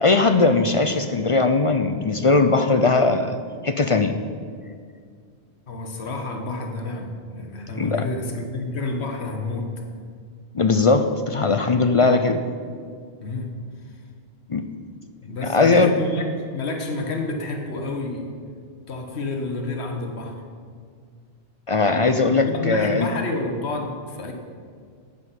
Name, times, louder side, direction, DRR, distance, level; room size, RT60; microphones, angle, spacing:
voice 1, 0.0-3.4 3.6-4.1 7.8-8.0 10.5-12.4 14.5-14.6 15.4-15.9 21.7-23.1, left 3 dB, 45° left, 8 dB, 0.4 m, -19 dB
voice 2, 5.7-9.7 13.2-13.5 15.2-16.3 16.5-18.3 18.9-20.3 22.2-24.3, left 2 dB, 70° left, 3 dB, 1.6 m, -29 dB
9.9 x 7.3 x 8.3 m, 2.1 s
omnidirectional pair, 1.2 m